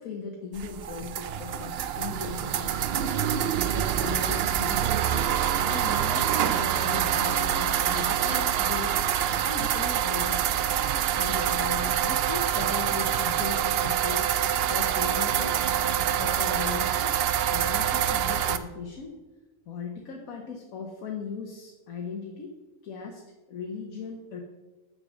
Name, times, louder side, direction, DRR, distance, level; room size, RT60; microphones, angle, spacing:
voice 1, 0.0-3.2 3.7-5.4 5.6-9.0 9.4-10.7 11.1-15.6 16.2-17.2 17.5-19.2 19.7-22.5 22.8-23.2 23.5-24.4, left 5 dB, 70° left, 1 dB, 1.4 m, -38 dB
sound 1, 0.6-18.6, right 9 dB, 75° right, 0.5 m, -26 dB
7.0 x 6.8 x 6.3 m, 1.2 s
omnidirectional pair, 1.6 m